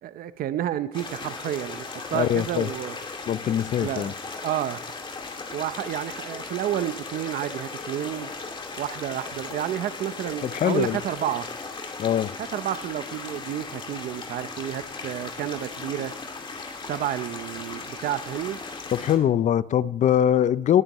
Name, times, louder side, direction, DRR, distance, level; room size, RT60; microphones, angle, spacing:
voice 1, 0.0-3.0 3.8-4.1 4.4-4.8 5.5-8.3 8.8-11.5 12.5-16.1 16.9-18.6, right 11 dB, 60° right, 0.7 m, -30 dB
sound 1, 0.9-19.2, left 4 dB, 30° left, 2.4 m, -37 dB
voice 2, 2.1-2.7 3.3-4.1 10.4-11.0 12.0-12.3 18.9-20.8, left 10 dB, 45° left, 0.5 m, -22 dB
19.5 x 9.1 x 3.0 m
cardioid pair, 110°, 17 cm